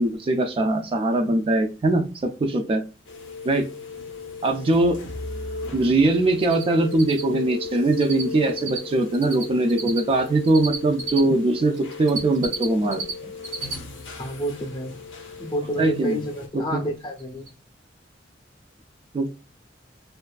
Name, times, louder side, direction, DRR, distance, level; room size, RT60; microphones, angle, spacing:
voice 1, 0.0-2.8 3.4-3.7 4.4-5.0 5.7-13.3 15.8-16.2 16.7-16.8 19.1-19.3, right 2 dB, 30° right, 5 dB, 0.3 m, -21 dB
sound 1, 3.0-16.5, left 4 dB, 85° left, 0.6 m, -37 dB
Cricket, 6.4-6.6 6.9-8.2 8.5-11.2 11.7-13.1 13.4-13.7 14.1-14.2 16.7-16.8 17.2-17.3 17.5-17.6, right 4 dB, 90° right, 0.7 m, -31 dB
voice 2, 14.2-15.0 15.4-17.5, right 1 dB, 25° left, 4 dB, 0.6 m, -29 dB
2.5 x 2.3 x 2.2 m, 0.33 s
head